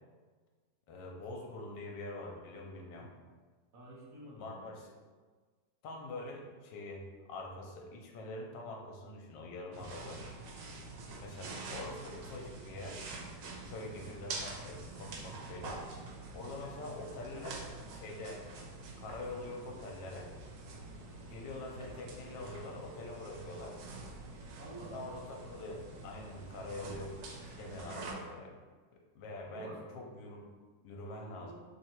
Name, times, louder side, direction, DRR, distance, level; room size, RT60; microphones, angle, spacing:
voice 1, 0.9-3.1 4.4-4.9 5.8-10.2 11.2-13.1 13.6-15.8 16.3-17.6 17.9-18.4 19.0-20.3 21.3-23.8 24.9-28.5 29.1-30.5 30.8-31.5, left 2 dB, 75° left, 1 dB, 1.2 m, -44 dB
voice 2, 3.7-4.7 24.5-25.1 29.5-29.8 31.3-31.5, right 1 dB, 55° right, -6 dB, 1.3 m, -49 dB
sound 1, 9.7-28.1, right 3 dB, 80° right, 1.3 m, -46 dB
3.1 x 2.8 x 4.3 m, 1.4 s
omnidirectional pair, 1.9 m